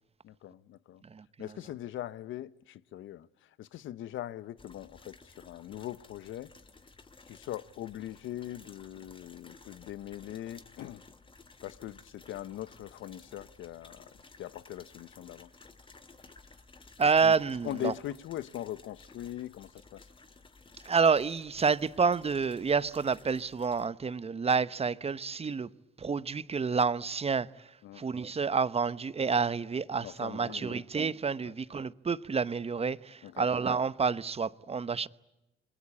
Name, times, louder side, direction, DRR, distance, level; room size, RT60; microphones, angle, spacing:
voice 1, 0.2-1.0 1.4-6.5 7.3-11.0 11.6-14.1 14.4-15.5 17.2-17.3 17.6-20.1 27.8-28.0 30.0-30.8 31.5-31.6 33.2-33.5, left 13 dB, 80° left, 0.9 m, -41 dB
sound 1, 4.6-23.9, left 3 dB, 25° left, 2.0 m, -56 dB
voice 2, 17.0-17.9 20.8-25.7 26.0-35.1, right 5 dB, 30° right, 0.9 m, -29 dB
27.5 x 21.5 x 8.6 m
cardioid pair, 90°, 20 cm